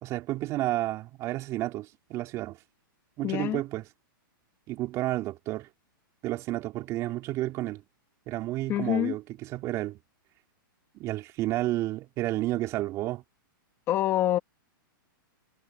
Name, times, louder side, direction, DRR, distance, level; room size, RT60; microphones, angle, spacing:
voice 1, 0.0-2.6 3.2-3.8 4.7-5.7 6.2-7.8 8.3-10.0 11.0-13.2, right 16 dB, 25° right, 3.4 m, -31 dB
voice 2, 3.2-3.6 8.7-9.1 13.9-14.4, left 13 dB, 20° left, 1.5 m, -26 dB
hypercardioid pair, 160°, 12 cm